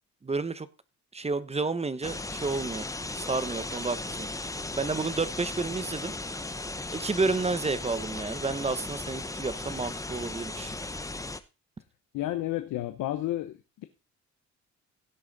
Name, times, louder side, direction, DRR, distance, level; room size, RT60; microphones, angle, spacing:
voice 1, 0.2-0.7 1.1-2.9 3.1-4.3 4.8-6.1 6.9-10.7, right 3 dB, 20° right, 0.9 m, -30 dB
sound 1, 2.0-11.4, left 2 dB, 10° left, 0.9 m, -36 dB
voice 2, 12.1-13.8, left 14 dB, 85° left, 0.9 m, -31 dB
16.5 x 6.3 x 4.0 m
cardioid pair, 90°, 30 cm